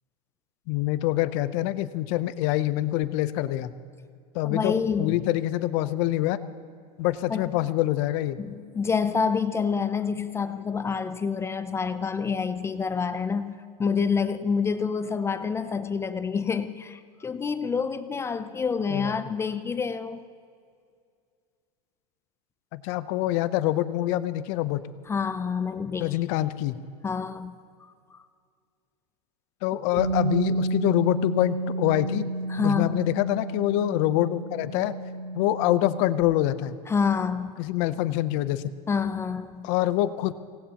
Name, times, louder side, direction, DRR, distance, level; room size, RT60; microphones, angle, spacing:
voice 1, 0.7-3.7 4.3-6.4 7.0-8.4 18.9-19.2 22.7-24.8 26.0-26.8 29.6-32.3 32.6-35.0 35.3-36.8 37.6-38.6 39.6-40.3, left 15 dB, 50° left, 13 dB, 0.8 m, -25 dB
voice 2, 4.4-5.2 7.3-7.5 8.4-20.2 25.1-26.2 27.0-27.6 32.5-33.0 36.9-37.5 38.9-39.7, left 5 dB, 15° left, 11 dB, 0.4 m, -27 dB
Bass guitar, 30.0-36.2, right 2 dB, 70° right, 4.8 m, -31 dB
24.0 x 18.0 x 3.0 m, 2.2 s
supercardioid pair, 135°, 20 cm